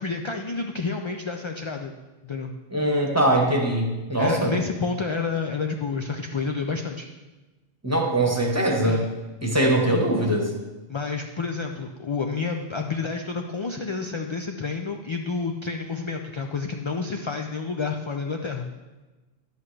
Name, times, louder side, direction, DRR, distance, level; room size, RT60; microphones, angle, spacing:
voice 1, 0.0-1.9 2.2-2.5 4.2-7.1 8.8-9.1 10.9-18.7, left 4 dB, 45° left, 3 dB, 0.4 m, -29 dB
voice 2, 2.7-4.5 7.8-9.1 9.4-10.5, right 1 dB, 15° right, 0 dB, 1.1 m, -22 dB
11.0 x 8.1 x 3.3 m, 1.2 s
omnidirectional pair, 1.1 m